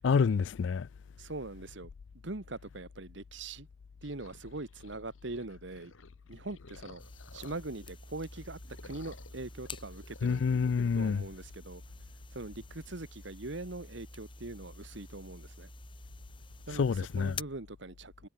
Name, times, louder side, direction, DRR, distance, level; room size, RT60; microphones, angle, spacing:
voice 1, 0.0-0.9 10.2-11.2 16.7-17.4, left 5 dB, 65° left, 0.4 m, -28 dB
voice 2, 1.2-1.9 2.2-3.7 4.0-5.9 6.3-7.0 7.3-10.5 10.9-11.8 12.3-15.7 16.7-18.3, right 2 dB, 65° right, 1.4 m, -42 dB
sound 1, 4.0-7.9 8.2-10.4, left 3 dB, 85° left, 2.3 m, -56 dB
sound 2, 7.0-17.4, left 3 dB, 25° left, 5.3 m, -48 dB
head